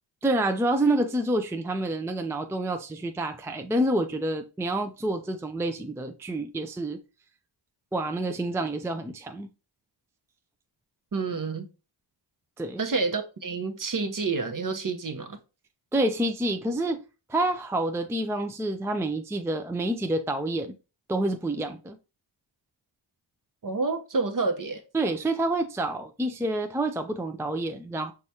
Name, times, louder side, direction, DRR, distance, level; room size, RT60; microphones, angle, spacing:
voice 1, 0.2-7.0 7.9-9.5 12.6-12.8 15.9-17.0 17.3-20.7 21.1-22.0 24.9-28.1, right 1 dB, 5° right, 0.4 m, -28 dB
voice 2, 11.1-11.7 12.8-15.4 23.6-24.8, right 4 dB, 40° right, 1.0 m, -29 dB
4.9 x 3.5 x 2.8 m
supercardioid pair, 45°, 48 cm